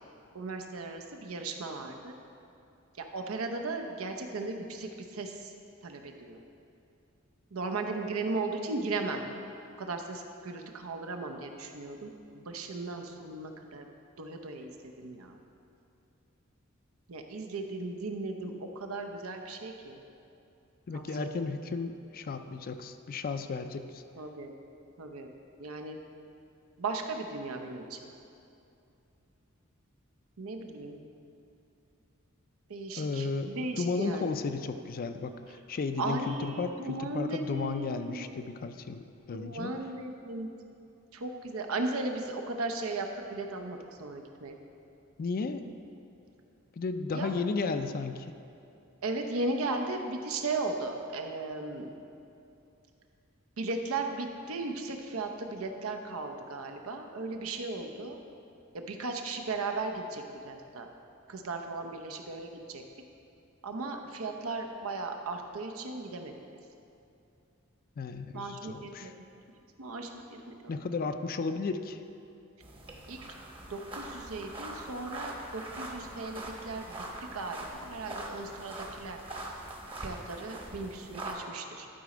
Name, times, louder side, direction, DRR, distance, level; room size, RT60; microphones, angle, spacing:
voice 1, 0.3-2.1 2.9-5.5 5.8-6.4 7.5-9.3 9.8-13.9 14.2-15.4 17.1-20.0 20.9-21.3 24.1-24.5 25.0-25.3 25.6-26.0 26.8-28.1 30.4-31.0 32.7-34.4 36.0-38.5 39.3-40.5 41.1-44.6 47.0-47.4 49.0-51.9 53.6-58.2 58.7-60.9 61.3-62.8 63.6-66.3 68.3-69.1 69.8-70.2 73.1-73.2 73.7-77.0 77.3-79.2 80.0-81.9, right 3 dB, 90° right, 4 dB, 0.7 m, -36 dB
voice 2, 20.9-24.0 33.0-39.0 39.3-39.7 45.2-45.6 46.7-48.3 68.0-69.1 70.7-72.0, left 4 dB, 45° left, 9 dB, 0.4 m, -34 dB
sound 1, 72.6-81.3, right 1 dB, 25° right, 0.9 m, -42 dB
11.5 x 4.2 x 4.9 m, 2.7 s
head